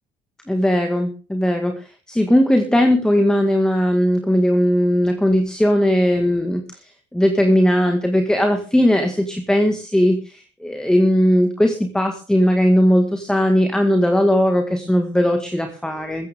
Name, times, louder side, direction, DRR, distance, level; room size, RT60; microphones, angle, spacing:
voice 1, 0.5-6.6 7.1-16.3, equal, 5° left, 5 dB, 2.0 m, -18 dB
16.0 x 14.5 x 3.7 m, 0.35 s
cardioid pair, 110°, 17 cm